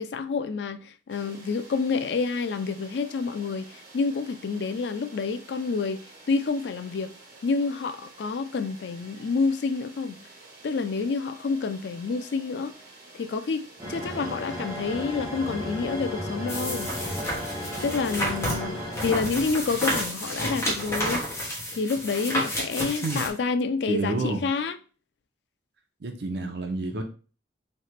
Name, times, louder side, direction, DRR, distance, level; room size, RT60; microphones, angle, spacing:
voice 1, 0.0-7.1 7.4-10.2 10.6-12.7 13.2-13.6 13.9-16.9 17.8-21.3 21.8-24.8, left 4 dB, 75° left, 0.4 m, -28 dB
sound 1, 1.1-21.0, right 2 dB, 50° right, 1.4 m, -50 dB
sound 2, 13.8-19.8, left 1 dB, 20° right, 1.2 m, -34 dB
sound 3, 16.5-23.3, equal, 15° left, 1.1 m, -31 dB
voice 2, 23.9-24.4 26.0-27.0, right 2 dB, 65° right, 0.7 m, -29 dB
3.3 x 2.8 x 4.3 m
head